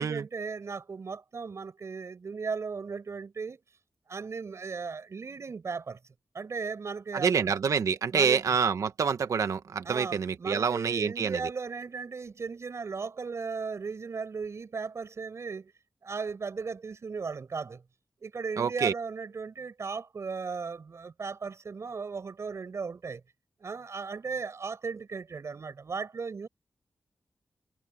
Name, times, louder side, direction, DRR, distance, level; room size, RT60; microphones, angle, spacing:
voice 1, 0.0-3.6 4.1-6.0 6.3-7.5 8.1-8.5 9.8-15.7 16.0-17.8 18.2-23.2 23.6-26.5, right 5 dB, 60° right, 4.9 m, -36 dB
voice 2, 7.1-11.4 18.6-18.9, right 6 dB, 80° right, 1.4 m, -27 dB
wide cardioid pair, 85°, 6 cm